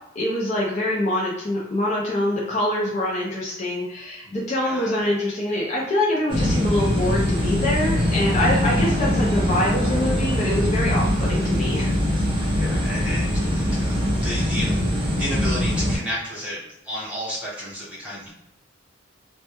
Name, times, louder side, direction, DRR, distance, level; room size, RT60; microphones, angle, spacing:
voice 1, 0.2-11.9, left 1 dB, 35° left, -4 dB, 0.5 m, -25 dB
voice 2, 4.6-5.1 12.5-14.8 15.2-18.3, equal, 5° right, -8 dB, 1.0 m, -32 dB
sound 1, 6.3-16.0, left 1 dB, 25° right, 0.5 m, -22 dB
2.1 x 2.1 x 2.9 m, 0.85 s
head